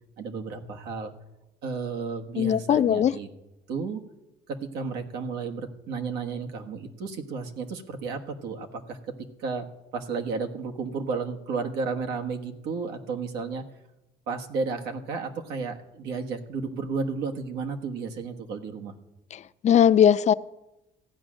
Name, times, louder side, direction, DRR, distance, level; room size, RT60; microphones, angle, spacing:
voice 1, 0.2-1.1 1.6-3.3 3.7-4.0 4.5-13.6 14.3-18.9, right 4 dB, 90° right, 4 dB, 1.5 m, -33 dB
voice 2, 2.4-3.1 19.6-20.3, left 9 dB, 45° left, 15 dB, 0.5 m, -19 dB
15.0 x 8.8 x 6.3 m, 0.96 s
cardioid pair, 110°, 17 cm